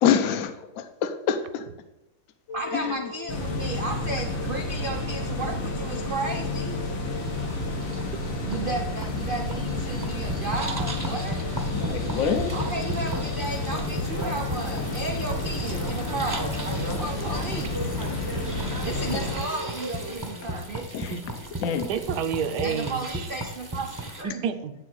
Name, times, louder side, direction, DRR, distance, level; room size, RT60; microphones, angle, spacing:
voice 1, 0.0-1.6 2.7-3.0 11.7-12.5 18.6-18.7 20.9-21.1 21.6-21.9, left 8 dB, 60° left, 8 dB, 0.9 m, -26 dB
sound 1, 2.5-20.2, left 3 dB, 45° left, 1.1 m, -42 dB
voice 2, 2.5-6.8 8.4-11.4 12.5-17.8 18.8-21.1 22.6-24.4, right 2 dB, 80° right, 3 dB, 0.4 m, -34 dB
sound 2, 3.3-19.3, left 2 dB, 80° left, 2.2 m, -31 dB
sound 3, 7.1-24.2, right 1 dB, 20° right, 0.5 m, -35 dB
voice 3, 21.9-23.3 24.2-24.7, right 7 dB, 65° right, 9 dB, 1.1 m, -29 dB
9.7 x 3.8 x 6.4 m, 0.95 s
omnidirectional pair, 2.1 m